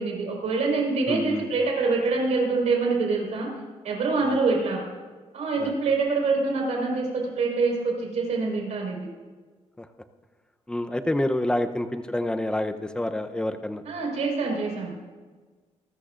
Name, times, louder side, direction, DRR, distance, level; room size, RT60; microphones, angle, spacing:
voice 1, 0.0-3.5 3.8-4.8 5.3-9.0 13.8-15.1, right 3 dB, 70° right, -1 dB, 4.8 m, -25 dB
voice 2, 1.1-1.5 4.2-4.4 5.6-5.7 9.8-9.9 10.7-13.8, left 1 dB, 5° left, 7 dB, 0.7 m, -28 dB
27.5 x 13.5 x 2.6 m, 1.4 s
wide cardioid pair, 145°, 12 cm